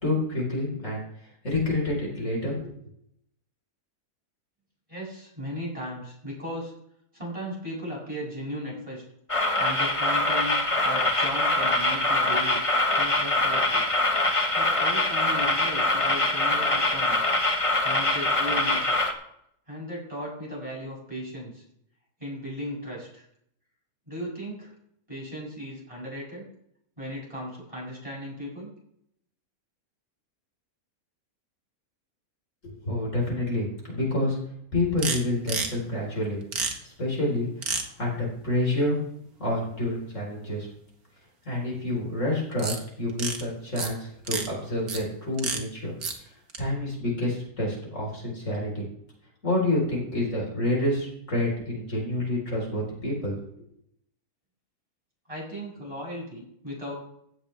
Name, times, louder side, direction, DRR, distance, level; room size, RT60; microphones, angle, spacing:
voice 1, 0.0-1.0 1.4-2.7 32.6-34.4 34.7-36.4 36.8-39.0 39.4-40.7 41.4-45.9 46.2-46.3 46.6-48.8 49.4-53.4, left 1 dB, 55° left, -2 dB, 4.8 m, -28 dB
voice 2, 4.9-6.7 7.1-9.0 9.6-12.6 12.9-13.9 14.5-17.3 17.8-19.0 19.7-21.6 22.2-23.3 24.1-24.7 25.1-26.4 27.0-28.7 55.3-56.9, equal, 20° right, -4 dB, 6.9 m, -36 dB
sound 1, 9.3-19.1, left 2 dB, 20° left, 1.4 m, -24 dB
sound 2, 35.0-35.2 35.5-35.7 36.5-36.7 37.6-37.8 42.6-42.8 43.1-43.4 43.8-43.9 44.3-44.5 44.9-45.0 45.4-45.6 46.0-46.2 46.5-46.6, right 4 dB, 75° right, 2.1 m, -29 dB
16.5 x 13.0 x 3.5 m, 0.72 s
omnidirectional pair, 1.6 m